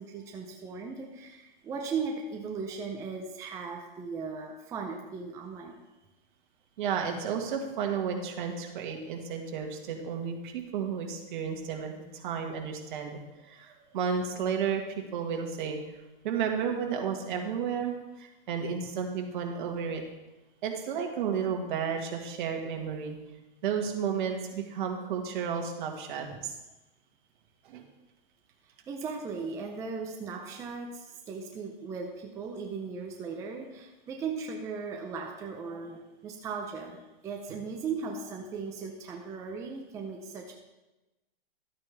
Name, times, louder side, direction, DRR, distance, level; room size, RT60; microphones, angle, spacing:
voice 1, 0.0-5.7 13.7-13.8 28.9-37.0 37.2-40.5, right 5 dB, 10° right, 1 dB, 0.5 m, -37 dB
voice 2, 6.8-15.8 16.2-20.0 20.6-23.2 23.6-26.6 27.6-27.8, right 7 dB, 55° right, 2 dB, 1.8 m, -32 dB
12.5 x 8.9 x 3.4 m, 1.1 s
hypercardioid pair, 155°, 29 cm